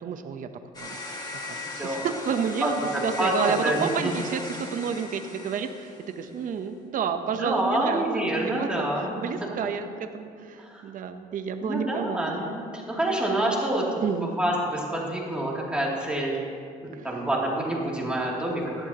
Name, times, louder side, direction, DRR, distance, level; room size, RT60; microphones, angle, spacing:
voice 1, 0.0-0.5 0.8-8.0 8.4-8.9 9.2-9.9 10.1-12.2 14.0-14.3 16.9-17.1, right 6 dB, 55° right, 7 dB, 0.8 m, -30 dB
sound 1, 0.7-6.3, left 2 dB, 25° left, 2.0 m, -38 dB
voice 2, 2.6-4.1 7.4-9.3 10.6-10.8 11.6-16.4 16.8-18.9, right 1 dB, 5° right, -4 dB, 2.7 m, -27 dB
17.0 x 12.0 x 2.9 m, 2.3 s
cardioid pair, 110°, 17 cm